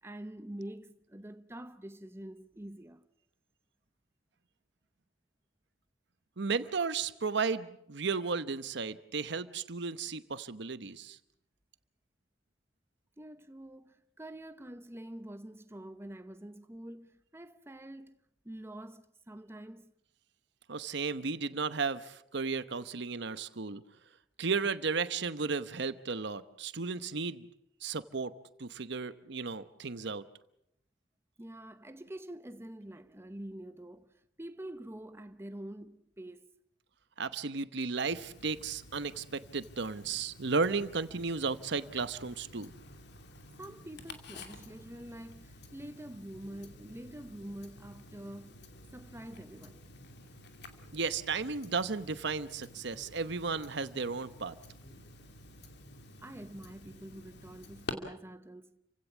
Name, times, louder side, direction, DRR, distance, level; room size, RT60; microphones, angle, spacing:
voice 1, 0.0-3.0 13.2-18.2 18.4-19.9 31.4-34.1 34.4-36.5 43.6-48.6 48.9-49.8 56.2-58.7, right 1 dB, 15° right, 0.9 m, -46 dB
voice 2, 6.4-11.2 20.7-23.8 24.4-27.5 27.8-28.3 28.6-30.2 37.2-42.7 50.9-54.5, right 4 dB, 65° right, 1.0 m, -34 dB
Tick-tock, 38.1-57.9, left 2 dB, 65° left, 2.6 m, -51 dB
30.0 x 16.5 x 7.3 m
head